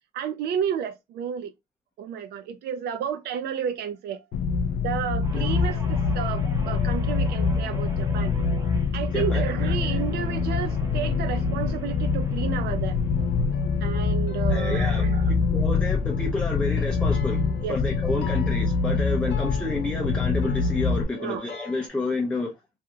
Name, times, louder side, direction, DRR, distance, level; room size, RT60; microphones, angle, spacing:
voice 1, 0.1-1.5 2.0-4.2 4.8-8.3 8.9-13.0 13.8-15.4 17.6-17.8 21.1-21.4, right 8 dB, 70° right, 0.5 m, -31 dB
sound 1, 4.3-21.0, left 5 dB, 65° left, 0.4 m, -25 dB
Guitar, 5.2-13.8 14.2-14.5, right 2 dB, 20° right, 1.0 m, -42 dB
sound 2, 13.1-21.9, left 7 dB, 90° left, 0.9 m, -44 dB
voice 2, 14.5-15.0 15.5-22.5, left 2 dB, 5° left, 0.5 m, -30 dB
2.7 x 2.5 x 2.3 m
cardioid pair, 110°, 17 cm